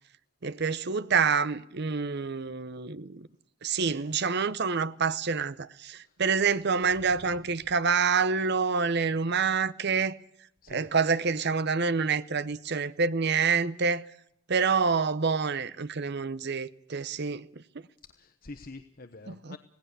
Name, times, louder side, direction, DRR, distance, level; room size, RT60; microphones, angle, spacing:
voice 1, 0.4-3.3 3.6-10.2 10.7-14.0 14.5-17.5 19.3-19.6, right 5 dB, 55° right, 0.8 m, -27 dB
voice 2, 18.1-19.6, left 2 dB, 45° left, 1.1 m, -46 dB
27.0 x 18.0 x 6.8 m
head